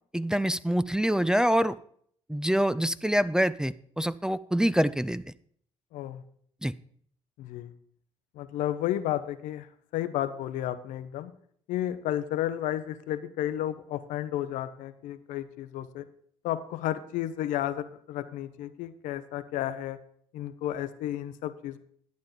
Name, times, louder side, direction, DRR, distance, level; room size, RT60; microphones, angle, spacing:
voice 1, 0.1-1.8 2.3-5.3 6.6-6.7, equal, 5° right, 14 dB, 0.4 m, -25 dB
voice 2, 5.9-6.2 7.4-7.7 8.3-11.3 11.7-16.1 16.4-20.0 20.3-21.8, left 12 dB, 75° left, 12 dB, 0.7 m, -32 dB
11.5 x 8.6 x 3.9 m, 0.62 s
hypercardioid pair, 60°, 13 cm